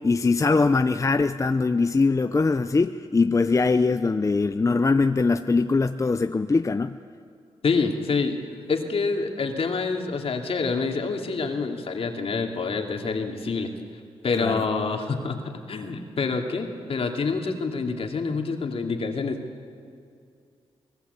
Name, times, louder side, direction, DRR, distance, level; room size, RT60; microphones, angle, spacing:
voice 1, 0.0-7.0 14.4-14.6, left 3 dB, 30° left, 10 dB, 0.6 m, -22 dB
voice 2, 7.6-8.4 8.7-13.7 14.2-19.4, left 4 dB, 60° left, 3 dB, 2.6 m, -27 dB
25.0 x 18.0 x 8.2 m, 2.3 s
cardioid pair, 65°, 11 cm